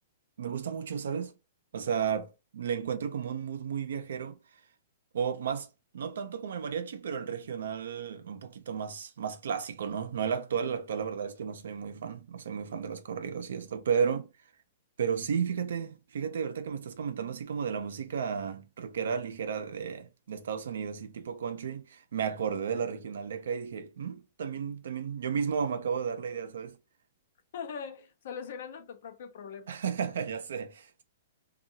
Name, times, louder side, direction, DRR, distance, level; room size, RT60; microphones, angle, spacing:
voice 1, 0.4-1.3 1.7-4.4 5.1-5.7 5.9-14.3 15.0-26.8 29.7-31.0, right 7 dB, 80° right, 0.5 m, -33 dB
voice 2, 27.5-29.8, left 6 dB, 65° left, 0.6 m, -41 dB
2.7 x 2.3 x 2.7 m
hypercardioid pair, 140°, 0 cm